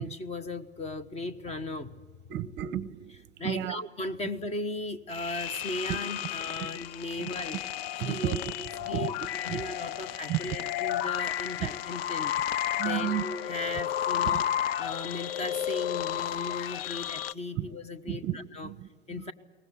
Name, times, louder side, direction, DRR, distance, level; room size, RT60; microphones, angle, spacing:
voice 1, 0.0-2.0 3.4-7.6 8.0-8.4 8.9-9.1 9.4-12.3 12.8-14.4 14.8-18.7 19.1-19.3, left 2 dB, 15° left, 14 dB, 1.2 m, -37 dB
voice 2, 2.3-3.2 3.4-3.8 5.9-6.0 6.6-6.7 7.2-7.3 8.0-8.5 8.8-9.1 9.5-9.6 10.3-10.4 11.6-11.7 12.8-13.2 14.2-14.4 17.6-17.7 18.1-19.3, right 12 dB, 30° right, 16 dB, 0.9 m, -33 dB
sound 1, 5.1-17.3, left 11 dB, 55° left, 0.7 m, -32 dB
23.0 x 19.0 x 8.6 m, 1.3 s
hypercardioid pair, 110°, 36 cm